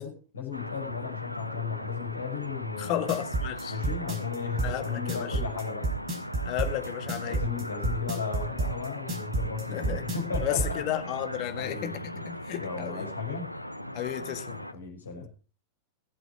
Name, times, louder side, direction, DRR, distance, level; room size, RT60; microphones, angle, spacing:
voice 1, 0.0-3.1 3.7-5.9 7.2-10.8 11.6-12.2 12.6-13.5 14.7-15.3, left 6 dB, 75° left, 5.9 m, -35 dB
sound 1, 0.5-14.7, equal, 90° left, 0.7 m, -38 dB
voice 2, 2.8-3.8 4.6-5.4 6.4-7.4 9.7-10.0 10.4-13.1 13.9-14.7, left 13 dB, 40° left, 1.8 m, -33 dB
sound 2, 2.8-10.7, right 3 dB, 30° right, 5.3 m, -29 dB
19.5 x 8.0 x 4.8 m
figure-of-eight pair, 90°, 0 cm